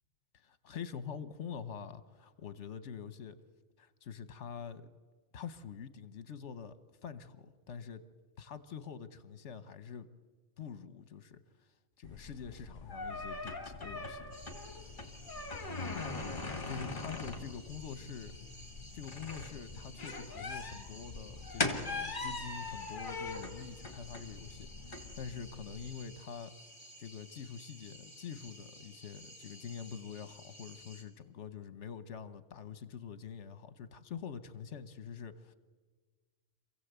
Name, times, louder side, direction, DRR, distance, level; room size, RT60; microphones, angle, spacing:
voice 1, 0.3-3.4 3.8-4.9 5.3-8.0 8.4-10.1 10.6-11.4 12.0-14.4 16.6-18.4 18.9-26.5 27.0-35.5, left 7 dB, 70° left, 13 dB, 1.3 m, -45 dB
sound 1, 12.0-25.9, left 3 dB, 40° left, 2.2 m, -41 dB
sound 2, 14.3-31.0, equal, 25° left, 3.3 m, -55 dB
27.0 x 15.5 x 8.1 m, 1.4 s
omnidirectional pair, 1.3 m